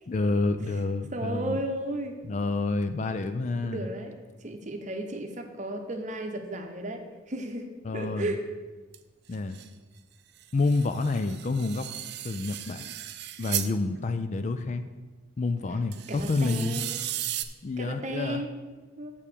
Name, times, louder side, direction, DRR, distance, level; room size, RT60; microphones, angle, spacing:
voice 1, 0.1-1.6 2.2-3.9 7.8-8.3 9.3-9.6 10.5-11.9 12.2-12.9 13.4-14.9 15.4-16.8 17.6-18.4, left 3 dB, 35° left, 9 dB, 0.4 m, -28 dB
voice 2, 1.1-2.2 3.6-4.2 4.4-7.7 7.9-8.4 16.1-16.9 17.8-18.5 19.0-19.1, right 1 dB, 35° right, 5 dB, 0.8 m, -34 dB
sound 1, 8.9-9.0 9.3-9.7 10.4-13.7 15.9-17.4, right 13 dB, 55° right, 0.4 m, -36 dB
7.2 x 4.8 x 6.8 m, 1.3 s
head